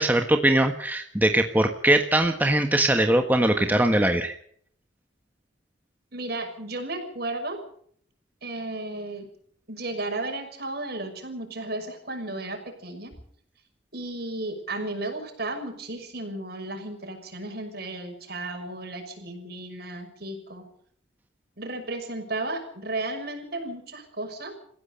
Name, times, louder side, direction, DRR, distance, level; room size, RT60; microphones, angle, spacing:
voice 1, 0.0-4.4, right 1 dB, 10° right, 5 dB, 1.4 m, -21 dB
voice 2, 6.1-7.6 8.4-9.3 9.7-13.1 13.9-20.7 21.6-24.5, right 2 dB, 55° right, 5 dB, 6.3 m, -34 dB
29.5 x 16.0 x 5.5 m, 0.62 s
head